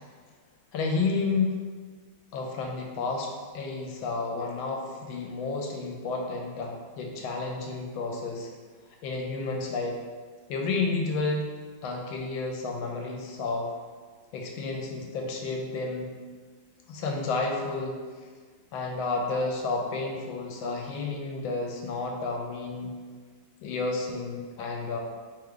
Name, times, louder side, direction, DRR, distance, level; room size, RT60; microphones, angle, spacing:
voice 1, 0.7-1.5 2.3-8.5 9.0-10.0 10.5-11.5 11.8-13.7 14.3-16.1 16.9-17.9 18.7-22.9 23.6-25.0, left 3 dB, 85° left, 1 dB, 1.4 m, -31 dB
3.4 x 3.3 x 3.7 m, 1.5 s
omnidirectional pair, 2.2 m